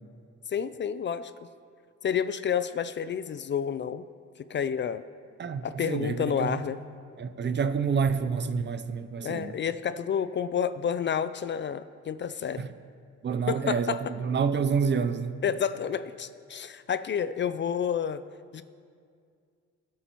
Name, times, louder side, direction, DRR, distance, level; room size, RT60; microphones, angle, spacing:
voice 1, 0.5-1.3 2.0-4.0 4.5-5.0 5.6-6.8 9.2-12.6 13.5-14.0 15.4-18.2 18.5-18.6, left 8 dB, 40° left, 0.4 m, -29 dB
voice 2, 5.4-6.6 7.2-9.6 12.6-12.7 13.2-15.4, right 6 dB, 35° right, 0.5 m, -28 dB
22.0 x 8.3 x 3.0 m
cardioid pair, 90°, 30 cm